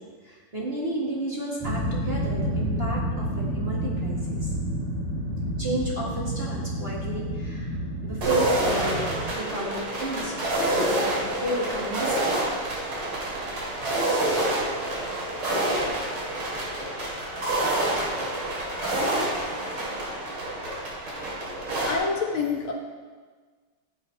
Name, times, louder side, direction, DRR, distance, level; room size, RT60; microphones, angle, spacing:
voice 1, 0.0-4.5 5.6-12.4, right 2 dB, 30° right, -5 dB, 1.7 m, -32 dB
sound 1, 1.6-9.3, equal, 10° right, 3.1 m, -29 dB
sound 2, 8.2-21.9, right 1 dB, 70° right, 3.2 m, -28 dB
voice 2, 21.8-22.7, left 5 dB, 70° left, 0 dB, 2.2 m, -27 dB
15.0 x 8.1 x 2.8 m, 1.5 s
omnidirectional pair, 2.4 m